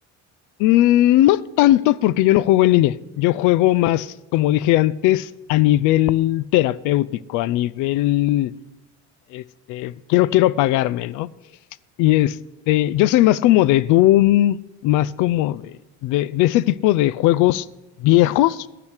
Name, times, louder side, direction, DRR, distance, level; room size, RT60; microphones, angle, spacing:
voice 1, 0.6-8.5 9.3-9.4 9.7-11.3 12.0-12.4 12.7-14.6 14.8-15.8 16.0-17.7 18.0-18.7, left 15 dB, 80° left, 0.4 m, -18 dB
11.5 x 5.0 x 8.2 m
cardioid pair, 175°, 30 cm